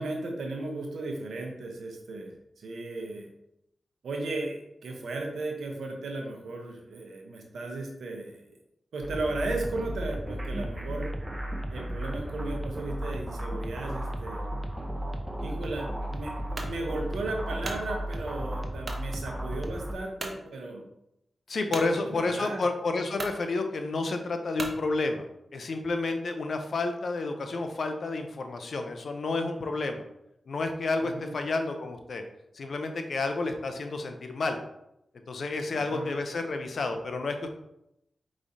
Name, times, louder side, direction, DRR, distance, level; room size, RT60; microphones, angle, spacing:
voice 1, 0.0-3.3 4.0-8.4 8.9-11.1 11.7-14.4 15.4-20.8 21.7-22.6 31.0-31.3 35.7-36.1, right 2 dB, 85° right, 2 dB, 0.8 m, -35 dB
sound 1, 9.0-19.9, right 1 dB, 20° right, 0.6 m, -34 dB
sound 2, 16.5-16.8 17.3-17.9 18.8-19.1 19.6-19.7 20.2-20.4 21.7-21.9 22.7-22.8 23.1-23.4 24.6-24.8, right 2 dB, 55° right, 0.7 m, -36 dB
voice 2, 21.5-25.3 25.5-30.0 30.5-32.2 32.5-34.6 35.3-37.5, left 3 dB, 70° left, 6 dB, 0.5 m, -30 dB
4.8 x 3.1 x 2.7 m, 0.82 s
cardioid pair, 40°, 0 cm